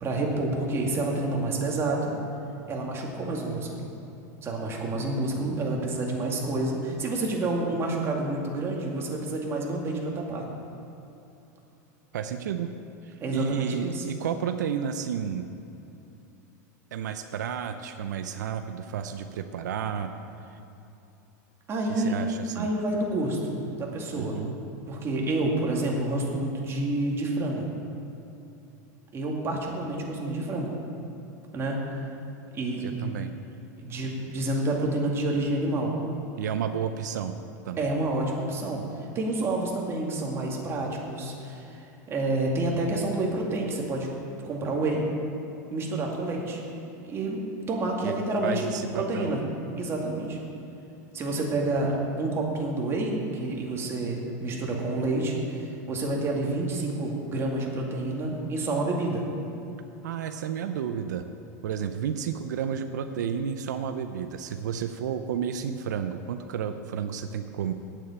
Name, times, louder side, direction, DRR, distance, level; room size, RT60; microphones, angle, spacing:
voice 1, 0.0-2.1 2.7-3.9 4.4-10.5 13.2-14.0 21.7-22.2 22.5-24.4 24.9-27.7 29.1-30.7 31.5-31.8 32.5-33.0 33.8-36.0 37.8-38.8 39.1-44.1 44.4-45.1 45.7-46.6 47.0-47.4 47.7-48.7 48.9-49.4 49.8-50.4 51.1-59.2, right 2 dB, 25° right, -1 dB, 2.3 m, -29 dB
voice 2, 12.1-12.7 13.0-15.5 16.9-20.1 20.5-20.6 21.9-22.7 24.1-24.5 32.8-33.3 36.4-37.3 37.7-37.9 48.0-48.2 48.4-49.3 60.0-61.2 61.6-67.7, right 8 dB, 90° right, 8 dB, 0.6 m, -31 dB
8.8 x 7.4 x 8.6 m, 2.8 s
supercardioid pair, 125°, 9 cm